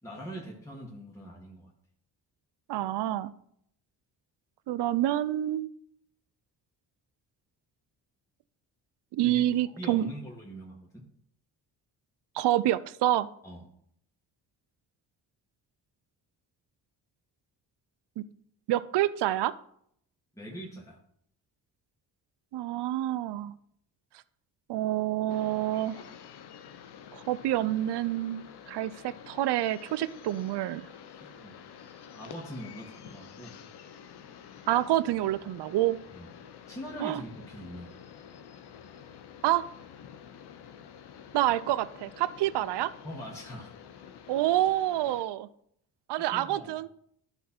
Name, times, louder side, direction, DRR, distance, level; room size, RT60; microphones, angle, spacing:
voice 1, 0.0-1.7 9.2-11.0 13.4-13.6 20.4-21.0 31.4-31.6 32.1-33.5 36.1-36.3 36.7-37.9 43.0-43.7 46.3-46.7, equal, 5° left, -4 dB, 2.2 m, -42 dB
voice 2, 2.7-3.3 4.7-5.7 9.2-10.1 12.3-13.3 18.2-18.3 18.7-19.5 22.5-23.5 24.7-26.0 27.1-30.9 34.7-36.0 37.0-37.2 39.4-39.7 41.3-42.9 44.3-45.5 46.1-46.9, right 14 dB, 65° right, 16 dB, 0.6 m, -27 dB
sound 1, 25.3-45.2, left 8 dB, 60° left, 0.9 m, -49 dB
11.5 x 4.1 x 4.4 m, 0.69 s
supercardioid pair, 55°, 44 cm